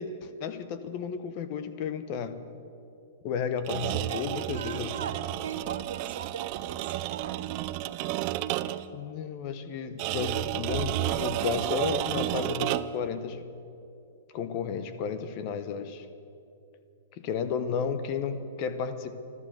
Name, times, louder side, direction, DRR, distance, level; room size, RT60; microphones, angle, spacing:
voice 1, 0.0-2.4 3.2-4.9 8.9-13.4 14.3-16.1 17.1-19.1, left 6 dB, 35° left, 11 dB, 0.9 m, -33 dB
sound 1, 3.6-8.9 10.0-13.1, right 14 dB, 35° right, 0.4 m, -31 dB
voice 2, 4.1-7.5, right 7 dB, 80° right, 10 dB, 1.1 m, -40 dB
13.5 x 12.5 x 7.8 m, 2.7 s
hypercardioid pair, 155°, 0 cm